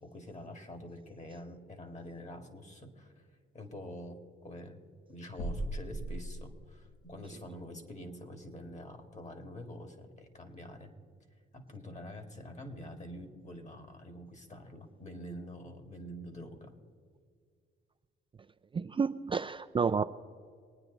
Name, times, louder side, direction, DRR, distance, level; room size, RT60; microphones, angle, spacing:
voice 1, 0.0-3.3 3.5-4.8 5.1-10.9 11.5-16.8, equal, 35° left, 6 dB, 2.3 m, -46 dB
sound 1, 5.4-7.0, right 1 dB, 70° left, 4.5 m, -38 dB
voice 2, 18.7-20.0, right 5 dB, 25° right, 8 dB, 0.4 m, -30 dB
23.5 x 9.7 x 4.0 m, 2.1 s
cardioid pair, 90°, 20 cm